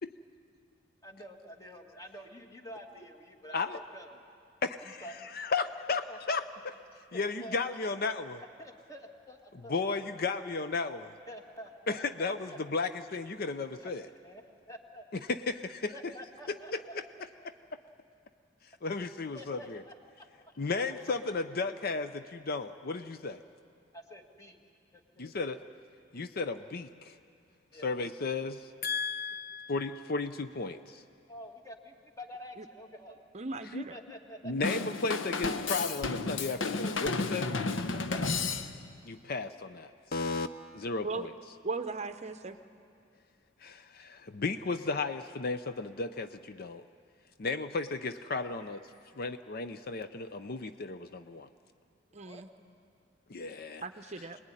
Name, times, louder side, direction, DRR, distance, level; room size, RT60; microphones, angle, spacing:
voice 1, 1.0-4.2 4.8-5.5 5.9-6.2 7.1-7.6 8.4-9.8 11.3-12.9 13.8-13.9 14.2-15.1 15.9-17.0 19.3-19.9 20.4-20.5 21.0-21.3 23.9-24.6 24.9-25.2 27.7-27.9 31.3-33.2 33.9-34.5 37.9-38.3 52.3-52.4, equal, 20° left, 3 dB, 2.1 m, -48 dB
voice 2, 4.6-5.1 5.3-6.0 6.3-6.7 7.1-8.4 9.7-11.1 11.9-14.1 15.3-15.9 16.5-16.8 18.8-19.8 20.6-23.4 25.2-25.6 26.1-27.1 27.8-31.0 33.6-33.8 34.4-37.5 39.1-40.5 40.7-41.3 43.6-46.8 47.4-48.9 49.2-51.5 53.3-53.8 54.2-54.3, left 4 dB, 50° left, 10 dB, 0.6 m, -34 dB
voice 3, 33.3-34.0 41.0-41.3 41.6-42.6 52.1-52.5 53.8-54.4, right 4 dB, 35° right, 9 dB, 0.8 m, -37 dB
Drum kit / Drum, 34.6-39.0, left 3 dB, 80° left, 1.0 m, -32 dB
25.0 x 20.0 x 9.9 m, 2.4 s
head